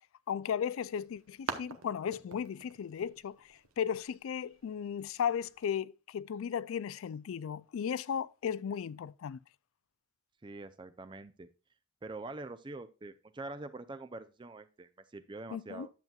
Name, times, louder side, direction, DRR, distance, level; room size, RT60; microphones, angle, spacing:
voice 1, 0.3-9.4 15.5-15.9, left 8 dB, 75° left, 0.3 m, -36 dB
sound 1, 0.5-5.7, right 5 dB, 80° right, 0.9 m, -47 dB
voice 2, 10.4-11.5 12.0-15.9, right 2 dB, 20° right, 0.4 m, -45 dB
10.5 x 7.3 x 2.3 m
head